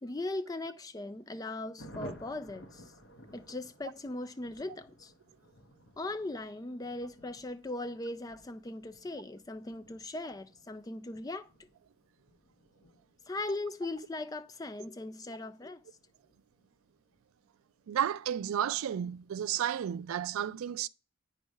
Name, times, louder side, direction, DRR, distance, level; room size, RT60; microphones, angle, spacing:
voice 1, 0.0-2.9 3.3-5.1 6.0-11.5 13.3-15.8, left 2 dB, 15° left, 0.3 m, -39 dB
Thunder, 1.8-17.9 18.2-18.3 18.6-18.7 19.0-19.4, equal, 60° left, 1.2 m, -55 dB
voice 2, 17.9-20.9, right 10 dB, 80° right, 0.3 m, -32 dB
8.8 x 3.3 x 5.3 m
head